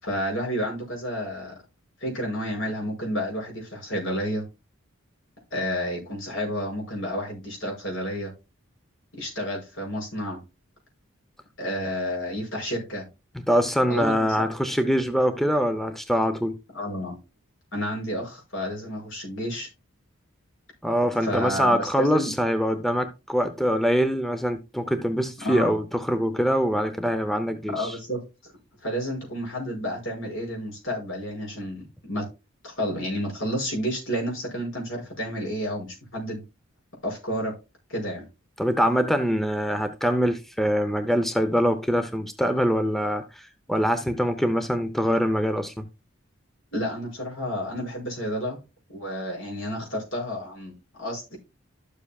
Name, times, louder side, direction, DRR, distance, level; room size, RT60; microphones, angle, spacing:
voice 1, 0.0-1.5 2.0-4.4 5.5-8.3 9.1-10.4 11.6-13.1 13.9-14.5 16.7-17.2 17.7-19.7 21.2-22.4 25.4-25.7 27.7-28.5 28.8-32.2 32.6-36.4 37.0-37.5 37.9-38.2 46.7-48.6 48.9-51.4, equal, 70° left, 5.9 m, -30 dB
voice 2, 13.3-16.6 20.8-27.9 38.6-45.8, equal, ahead, 0.6 m, -24 dB
12.5 x 7.3 x 2.3 m
head